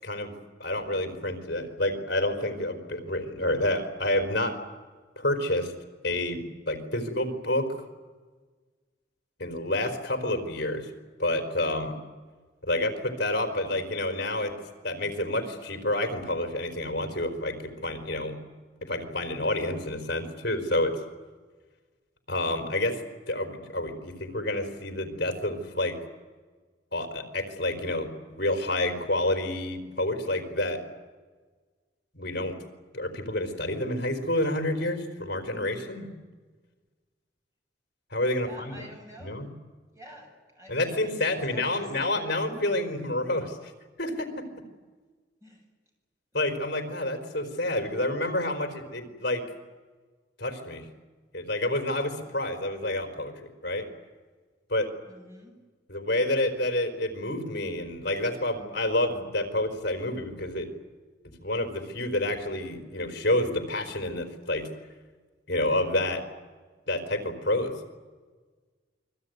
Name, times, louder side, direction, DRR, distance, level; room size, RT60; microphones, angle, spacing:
voice 1, 0.0-0.3 0.6-4.5 5.2-5.7 6.0-7.8 9.4-10.9 11.2-12.0 12.6-14.6 14.8-18.4 18.8-21.0 22.3-23.0 23.3-26.0 26.9-30.8 32.1-32.6 32.9-36.1 38.1-38.8 39.2-39.5 40.7-43.7 44.0-44.4 46.3-49.4 50.4-50.9 51.3-53.9 54.7-54.9 55.9-60.7 61.4-64.7 65.5-66.2 66.9-67.7, left 1 dB, 60° left, 5 dB, 4.3 m, -29 dB
voice 2, 38.4-39.4 39.9-41.1 41.5-42.3 45.4-45.6 55.1-55.6, right 1 dB, 15° right, 1 dB, 7.4 m, -48 dB
28.5 x 21.5 x 9.5 m, 1.4 s
head